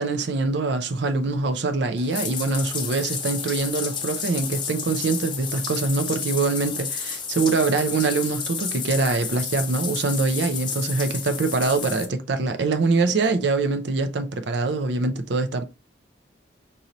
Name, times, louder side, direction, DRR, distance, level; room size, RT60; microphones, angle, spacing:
voice 1, 0.0-15.6, right 3 dB, 70° right, 0.5 m, -24 dB
Bathtub (filling or washing), 2.0-12.0, left 6 dB, 25° left, 0.6 m, -31 dB
5.3 x 2.6 x 2.9 m
head